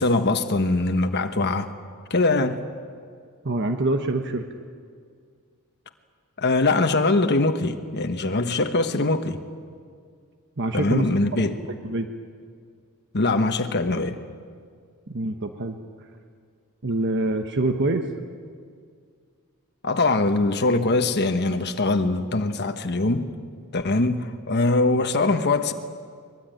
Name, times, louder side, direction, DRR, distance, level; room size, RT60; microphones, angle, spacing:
voice 1, 0.0-1.7 2.1-2.6 6.4-9.4 10.7-11.6 13.1-14.2 19.8-23.3 23.7-25.7, left 2 dB, 50° left, 1.2 m, -22 dB
voice 2, 3.4-4.4 10.6-11.1 11.8-12.1 15.1-15.8 16.8-18.1, right 2 dB, 55° right, 1.2 m, -25 dB
23.5 x 21.0 x 9.2 m
head